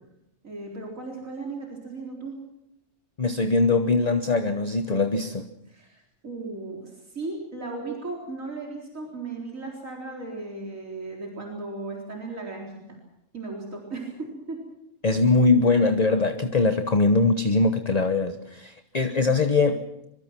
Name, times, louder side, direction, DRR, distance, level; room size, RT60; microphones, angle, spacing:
voice 1, 0.4-2.4 5.7-13.0 13.3-14.6, right 3 dB, 90° right, -1 dB, 4.6 m, -36 dB
voice 2, 3.2-5.5 15.0-19.8, left 3 dB, 35° left, 9 dB, 1.1 m, -22 dB
24.5 x 24.0 x 6.0 m, 0.84 s
omnidirectional pair, 1.3 m